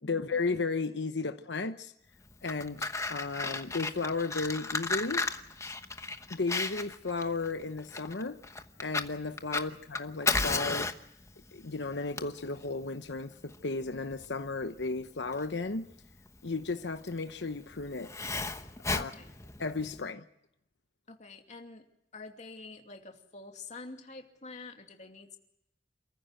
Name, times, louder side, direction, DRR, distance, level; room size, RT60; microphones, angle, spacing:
voice 1, 0.0-1.9 2.4-5.2 6.3-8.4 8.8-10.9 11.5-15.9 16.4-18.1 18.9-19.1 19.6-20.2, left 3 dB, 90° left, 1.0 m, -34 dB
Fire, 2.3-20.0, left 3 dB, 15° left, 1.0 m, -35 dB
voice 2, 18.9-19.3 21.1-21.9 22.1-25.4, left 3 dB, 40° left, 2.6 m, -47 dB
28.0 x 15.0 x 7.7 m
head